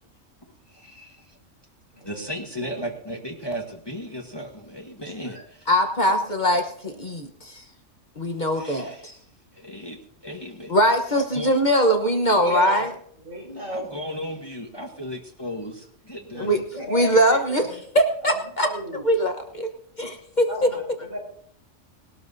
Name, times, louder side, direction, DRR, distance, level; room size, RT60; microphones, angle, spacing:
voice 1, 0.7-1.4 2.0-5.7 8.5-9.1 9.5-10.7 11.2-11.6 12.5-12.6 13.7-15.7 16.0-16.6, equal, 20° left, 3 dB, 1.2 m, -35 dB
voice 2, 1.9-2.9 5.1-5.4 6.0-6.2 12.2-12.9 13.2-13.9 16.3-17.8 18.2-19.0 20.5-21.2, equal, 75° right, -2 dB, 5.5 m, -35 dB
voice 3, 5.7-6.6 7.0-7.6 8.2-9.1 10.7-12.8 16.4-16.6 16.9-17.6 17.9-18.7 19.0-19.7 20.0-20.7, equal, 35° left, 4 dB, 1.2 m, -21 dB
19.5 x 13.0 x 2.7 m, 0.65 s
omnidirectional pair, 1.4 m